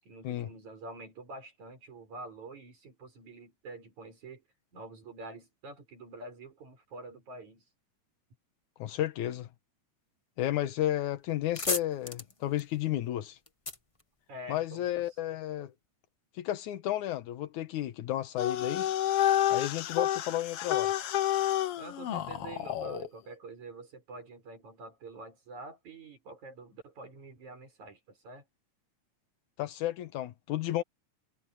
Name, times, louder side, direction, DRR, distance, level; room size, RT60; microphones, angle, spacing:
voice 1, 0.0-4.4 4.7-7.6 14.3-14.9 21.8-28.4, right 2 dB, 70° right, 7.8 m, -47 dB
voice 2, 8.8-9.5 10.4-13.4 14.5-15.7 16.3-18.9 19.5-20.9 29.6-30.8, left 13 dB, 85° left, 2.4 m, -32 dB
sound 1, 10.8-11.0 11.3-14.9, left 2 dB, 35° left, 0.5 m, -37 dB
sound 2, 18.4-23.1, left 12 dB, 65° left, 1.7 m, -29 dB
omnidirectional pair, 3.4 m